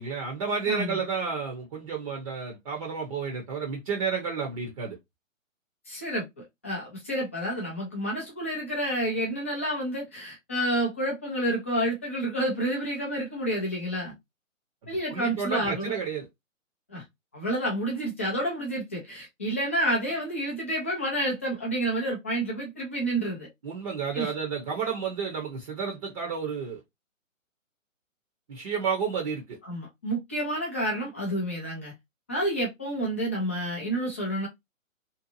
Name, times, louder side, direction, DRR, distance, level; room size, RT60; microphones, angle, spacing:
voice 1, 0.0-5.0 14.8-16.3 23.6-26.8 28.5-29.6, right 5 dB, 25° right, 0.7 m, -31 dB
voice 2, 0.7-1.0 5.9-6.2 6.6-14.1 14.9-16.0 16.9-17.0 17.3-23.5 24.1-24.3 29.6-31.9 32.3-34.5, right 1 dB, 10° left, 0.4 m, -29 dB
2.7 x 2.4 x 2.5 m
hypercardioid pair, 140°, 40 cm